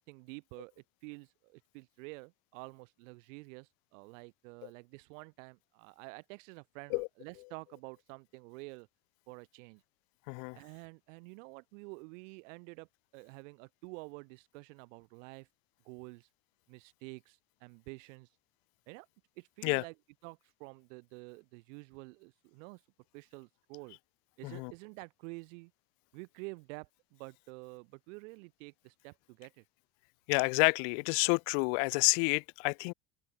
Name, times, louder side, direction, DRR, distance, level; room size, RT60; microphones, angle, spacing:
voice 1, 0.0-8.9 9.3-9.8 10.5-12.9 13.1-15.5 15.8-16.3 16.7-18.4 18.9-19.1 19.4-19.9 20.2-22.8 23.1-24.0 24.4-25.7 26.1-29.6, right 28 dB, 90° right, 1.1 m, -49 dB
voice 2, 10.3-10.6 19.6-19.8 24.4-24.7 30.3-32.9, left 40 dB or more, 80° left, 0.6 m, -29 dB
open air
cardioid pair, 135°, 37 cm